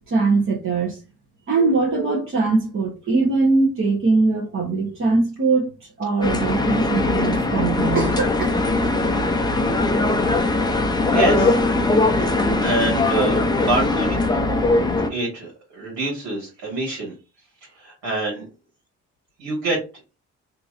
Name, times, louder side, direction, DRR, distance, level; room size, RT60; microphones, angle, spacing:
voice 1, 0.1-1.0 1.5-8.6, right 3 dB, 45° right, 1.0 m, -21 dB
sound 1, 6.2-15.1, left 2 dB, 15° left, 0.5 m, -20 dB
voice 2, 11.1-11.6 12.6-14.3 15.1-17.1 17.6-18.5 19.4-19.8, right 2 dB, 85° right, 1.6 m, -26 dB
2.9 x 2.8 x 2.5 m
cardioid pair, 90°, 30 cm